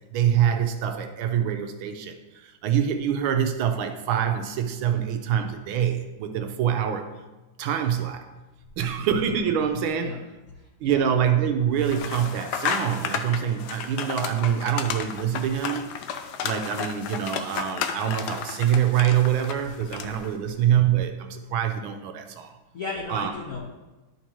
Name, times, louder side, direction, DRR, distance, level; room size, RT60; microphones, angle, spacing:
voice 1, 0.1-7.1 7.6-8.2 8.8-10.3 10.8-15.9 16.4-22.5 23.1-23.3, right 9 dB, 75° right, 6 dB, 1.4 m, -25 dB
sound 1, 11.8-20.3, left 7 dB, 85° left, 0.9 m, -32 dB
voice 2, 22.7-23.6, left 3 dB, 60° left, -2 dB, 0.9 m, -34 dB
11.0 x 5.3 x 3.0 m, 1.1 s
omnidirectional pair, 2.4 m